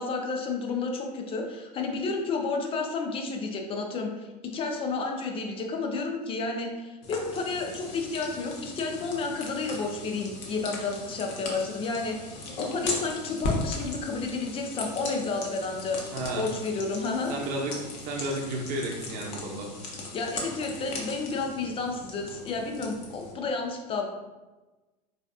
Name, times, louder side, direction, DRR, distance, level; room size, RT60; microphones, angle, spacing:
voice 1, 0.0-16.0 16.4-17.3 20.1-24.1, left 3 dB, 25° left, 2 dB, 0.5 m, -31 dB
sound 1, 7.0-23.3, left 2 dB, 50° left, 0.8 m, -38 dB
voice 2, 16.1-16.4 17.3-17.8 18.0-19.7, right 1 dB, 45° right, 0 dB, 0.8 m, -32 dB
4.0 x 2.7 x 2.4 m, 1.2 s
figure-of-eight pair, 80°, 21 cm